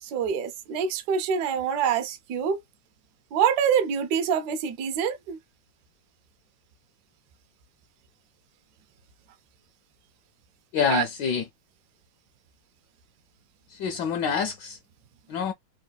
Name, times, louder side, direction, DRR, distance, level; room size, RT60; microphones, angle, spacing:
voice 1, 0.0-2.6 3.3-5.4 10.9-11.0, right 7 dB, 70° right, 1.0 m, -25 dB
voice 2, 10.7-11.5 13.7-14.8 15.3-15.5, left 6 dB, 75° left, 1.1 m, -26 dB
3.5 x 2.2 x 2.3 m
omnidirectional pair, 2.2 m